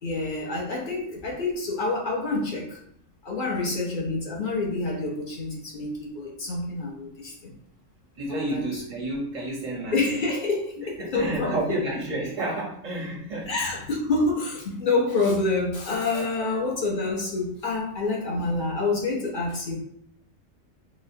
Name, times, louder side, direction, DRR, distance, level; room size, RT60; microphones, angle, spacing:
voice 1, 0.0-2.8 3.2-7.5 8.3-8.8 9.9-11.8 13.5-19.8, left 3 dB, 50° left, -1 dB, 0.8 m, -27 dB
voice 2, 8.2-10.0 10.8-13.5 16.1-16.3, right 2 dB, 45° right, -2 dB, 0.5 m, -31 dB
4.0 x 2.0 x 2.6 m, 0.68 s
omnidirectional pair, 1.4 m